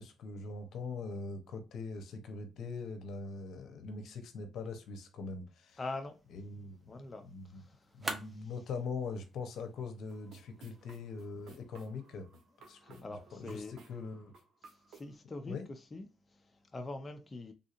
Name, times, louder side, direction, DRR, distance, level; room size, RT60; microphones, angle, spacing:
voice 1, 0.0-5.8 6.3-7.6 7.9-12.3 12.7-14.3 15.4-15.7, left 4 dB, 70° left, 0.8 m, -42 dB
sound 1, 5.7-11.6, right 2 dB, 25° right, 0.9 m, -48 dB
voice 2, 5.8-6.2 6.9-8.0 8.3-8.5 12.8-13.8 14.6-17.5, left 2 dB, 25° left, 0.5 m, -44 dB
sound 2, 10.1-15.1, right 4 dB, 75° right, 1.0 m, -59 dB
3.5 x 2.7 x 2.4 m
cardioid pair, 90°, 0 cm